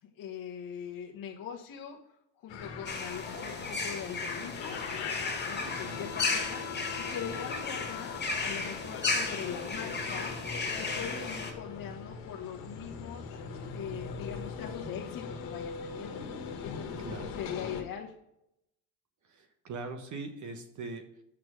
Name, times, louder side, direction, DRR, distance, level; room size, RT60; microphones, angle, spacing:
voice 1, 0.0-2.0 2.4-4.8 5.5-10.3 10.7-13.4 13.7-16.2 16.6-18.1, left 8 dB, 45° left, -1 dB, 1.3 m, -42 dB
sound 1, 2.5-17.8, left 6 dB, 70° left, 1.7 m, -41 dB
sound 2, 2.9-11.5, left 3 dB, 20° left, 2.3 m, -35 dB
voice 2, 5.6-6.1 17.0-17.4 19.2-21.2, right 3 dB, 40° right, 6 dB, 1.2 m, -41 dB
6.0 x 6.0 x 6.3 m, 0.81 s
supercardioid pair, 100°, 46 cm